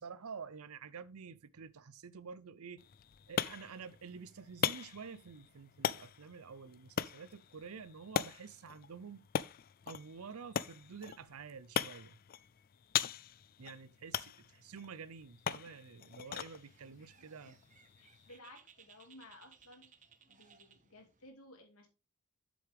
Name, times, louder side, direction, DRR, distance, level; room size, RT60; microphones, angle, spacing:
voice 1, 0.0-2.9 3.3-9.2 9.9-12.2 13.6-17.6, right 5 dB, 85° right, 0.6 m, -49 dB
sound 1, 2.8-18.4, left 8 dB, 40° left, 0.3 m, -41 dB
Bird, 16.2-21.3, right 7 dB, 35° right, 0.8 m, -63 dB
voice 2, 18.0-19.9 20.3-21.9, left 1 dB, 85° left, 2.5 m, -56 dB
7.7 x 7.1 x 3.5 m
head